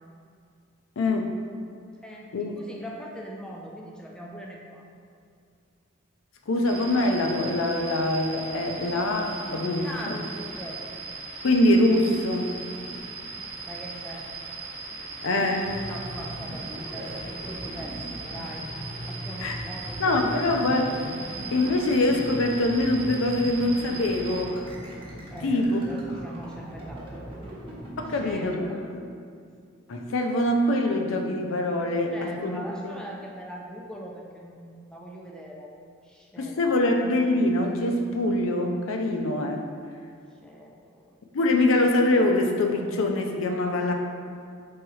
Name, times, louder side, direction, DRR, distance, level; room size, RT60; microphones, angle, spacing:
voice 1, 1.0-1.4 2.3-2.5 6.5-10.2 11.4-12.6 15.2-15.7 19.4-19.6 20.0-21.0 21.5-24.5 25.4-25.8 28.0-29.0 29.9-32.6 36.4-39.6 41.3-43.9, left 1 dB, 70° left, 3 dB, 0.4 m, -24 dB
voice 2, 2.0-4.9 9.8-10.8 12.9-14.3 15.1-18.7 19.0-20.5 25.3-27.6 28.1-28.8 32.1-35.7 36.0-36.9 40.4-41.1, equal, 5° left, -2 dB, 0.3 m, -41 dB
sound 1, 6.6-24.5, right 3 dB, 75° right, 0.8 m, -39 dB
sound 2, 15.6-28.3, right 1 dB, 25° right, 0.8 m, -39 dB
4.6 x 3.5 x 3.1 m, 2.3 s
head